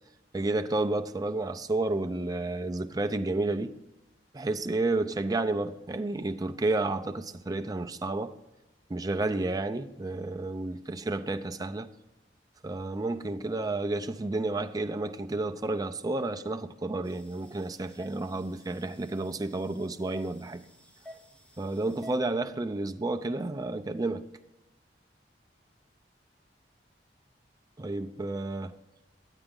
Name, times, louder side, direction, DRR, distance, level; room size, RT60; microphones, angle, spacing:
voice 1, 0.3-3.7 4.3-8.4 8.9-11.9 12.6-20.6 21.6-24.2 27.8-28.7, right 2 dB, 20° right, 0.5 m, -31 dB
sound 1, 17.0-22.2, equal, 5° left, 1.0 m, -52 dB
9.9 x 9.0 x 3.7 m
head